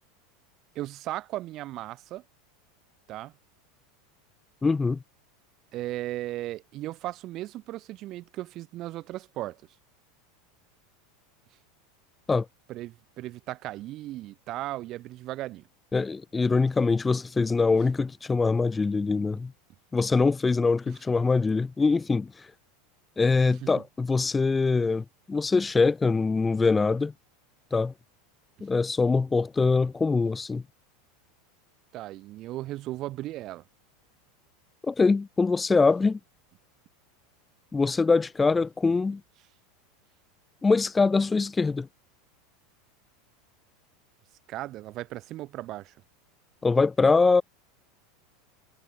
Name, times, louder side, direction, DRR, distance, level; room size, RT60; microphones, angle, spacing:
voice 1, 0.7-2.2 3.1-3.3 5.7-9.6 12.7-15.7 23.6-23.8 31.9-33.6 44.5-45.9, right 15 dB, 40° right, 2.6 m, -36 dB
voice 2, 4.6-5.0 12.3-12.4 15.9-19.5 19.9-22.3 23.2-27.1 27.7-27.9 28.6-30.6 34.9-36.2 37.7-39.2 40.6-41.9 46.6-47.4, left 4 dB, 15° left, 3.1 m, -23 dB
figure-of-eight pair, 80°, 0 cm